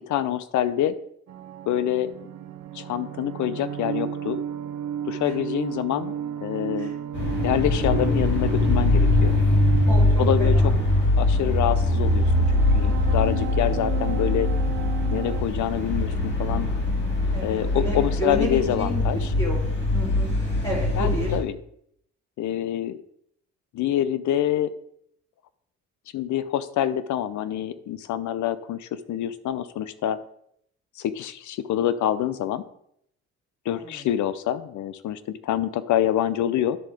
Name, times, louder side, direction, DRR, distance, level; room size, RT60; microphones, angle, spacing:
voice 1, 0.1-1.0 1.7-2.1 2.7-4.4 5.1-6.1 6.4-6.9 7.4-9.4 10.2-10.7 11.2-12.3 12.7-14.5 15.1-16.7 17.4-19.3 20.9-21.6 22.4-23.0 23.7-24.7 26.1-30.2 31.0-32.6 33.6-36.8, left 11 dB, 75° left, 14 dB, 0.6 m, -26 dB
sound 1, 1.3-15.4, right 10 dB, 60° right, 0.7 m, -34 dB
sound 2, 7.1-21.4, left 2 dB, 35° left, 2.8 m, -22 dB
voice 2, 9.9-10.7 17.3-19.6 19.9-20.4 20.6-21.3 33.8-33.9, right 1 dB, 15° left, -7 dB, 2.5 m, -31 dB
11.0 x 3.7 x 4.8 m, 0.71 s
cardioid pair, 90°, 30 cm